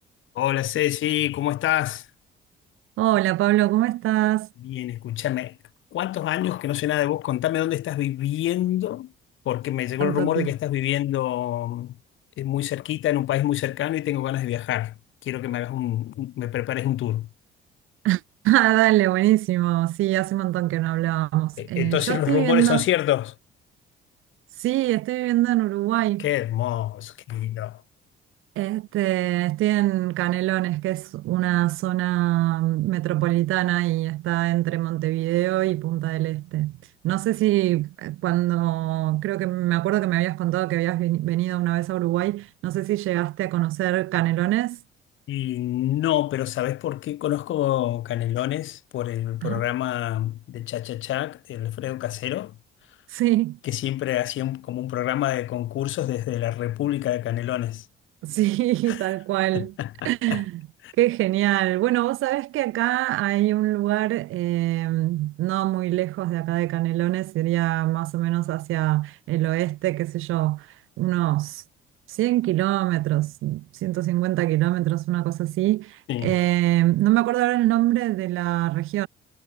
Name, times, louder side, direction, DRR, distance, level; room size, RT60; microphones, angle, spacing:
voice 1, 0.3-2.1 4.6-5.6 5.9-9.1 9.4-12.0 12.4-14.9 15.2-17.3 21.6-23.3 26.2-27.8 45.3-52.5 53.6-57.9 58.9-59.0 59.5-60.4 60.8-60.9 76.1-76.4, left 13 dB, 70° left, 1.6 m, -26 dB
voice 2, 3.0-4.5 10.0-10.5 18.0-22.8 24.6-26.3 28.5-36.8 37.0-44.8 49.4-49.6 53.1-53.6 58.2-59.7 60.0-60.6 61.0-70.6 71.0-71.6 72.1-79.1, right 16 dB, 80° right, 1.5 m, -23 dB
cardioid pair, 85°, 21 cm